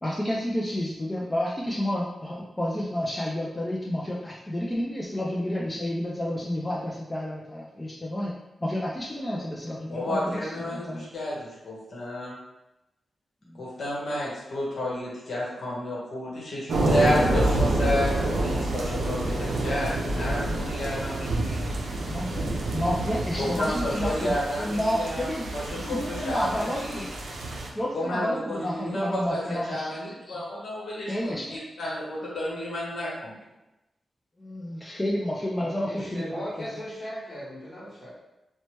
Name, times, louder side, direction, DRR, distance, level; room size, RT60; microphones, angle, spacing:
voice 1, 0.0-8.3 8.6-11.1 13.4-13.6 22.0-25.5 25.8-27.0 27.7-30.0 31.1-31.6 34.4-36.8, left 1 dB, 15° left, -4 dB, 0.3 m, -30 dB
voice 2, 9.9-12.3 13.6-18.1 18.4-21.6 23.4-25.3 25.5-27.0 27.9-33.4, left 1 dB, 70° left, -6 dB, 0.9 m, -31 dB
sound 1, 16.7-27.7, right 2 dB, 85° right, 0.4 m, -28 dB
voice 3, 35.6-38.1, equal, 40° left, -8 dB, 1.1 m, -37 dB
2.8 x 2.1 x 3.0 m, 0.96 s
wide cardioid pair, 135°, 0 cm